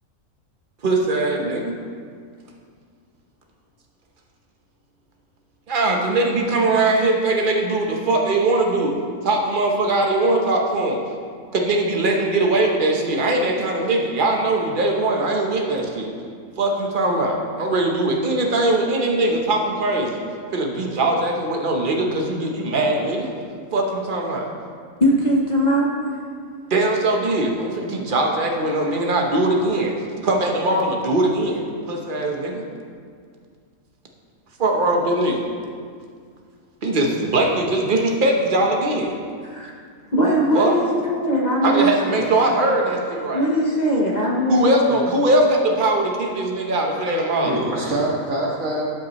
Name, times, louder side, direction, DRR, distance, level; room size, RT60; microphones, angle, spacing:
voice 1, 0.8-1.8 5.7-9.0 9.2-11.0 11.5-16.1 16.6-20.1 20.5-23.3 23.7-24.5 26.7-29.9 30.2-32.6 34.6-35.4 36.8-39.1 40.5-40.8 41.6-43.5 44.5-47.6, right 2 dB, 40° right, 1 dB, 1.2 m, -21 dB
voice 2, 25.0-26.2 39.4-39.7 40.1-42.3 43.3-45.0, equal, 35° left, -3 dB, 1.1 m, -20 dB
voice 3, 47.1-48.8, right 1 dB, 75° right, -4 dB, 2.2 m, -25 dB
13.0 x 7.9 x 3.1 m, 2.1 s
omnidirectional pair, 1.4 m